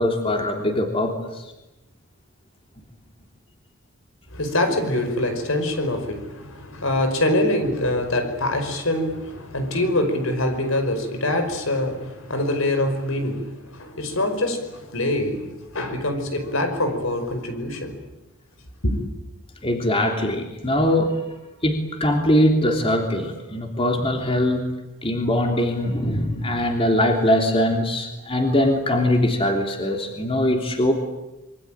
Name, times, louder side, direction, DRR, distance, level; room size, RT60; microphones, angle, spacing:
voice 1, 0.0-1.5 19.6-21.3 21.6-24.7 25.0-30.9, left 1 dB, 25° left, 3.2 m, -22 dB
voice 2, 4.3-18.0 18.8-19.0, left 1 dB, 70° left, 5.3 m, -24 dB
26.5 x 24.5 x 9.0 m
head